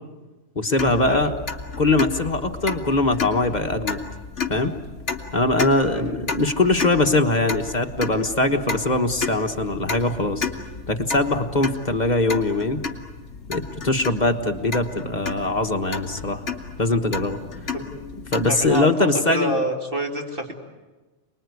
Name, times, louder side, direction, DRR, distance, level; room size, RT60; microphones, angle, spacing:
voice 1, 0.5-1.3 1.8-4.0 4.5-4.7 5.3-10.5 10.9-12.8 13.5-16.4 16.8-17.4 18.3-19.6, left 2 dB, 30° left, 5 dB, 1.4 m, -22 dB
sound 1, 0.8-18.8, left 5 dB, 55° left, 2.7 m, -33 dB
voice 2, 5.9-6.3 17.7-17.8 18.5-20.5, right 1 dB, 40° right, 2 dB, 3.0 m, -27 dB
29.0 x 20.5 x 9.6 m, 1.2 s
omnidirectional pair, 1.4 m